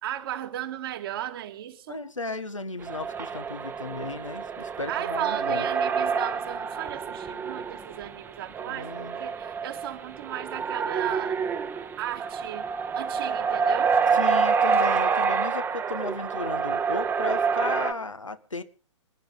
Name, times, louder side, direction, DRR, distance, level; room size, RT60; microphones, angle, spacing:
voice 1, 0.0-2.0 4.9-11.4 11.7-12.7 12.9-14.0, right 12 dB, 50° right, 2.2 m, -35 dB
voice 2, 1.9-5.7 8.7-9.2 14.1-18.6, left 3 dB, 85° left, 1.7 m, -34 dB
sound 1, 2.8-17.9, right 5 dB, 15° right, 1.2 m, -27 dB
27.0 x 10.0 x 3.9 m
figure-of-eight pair, 120°, 16 cm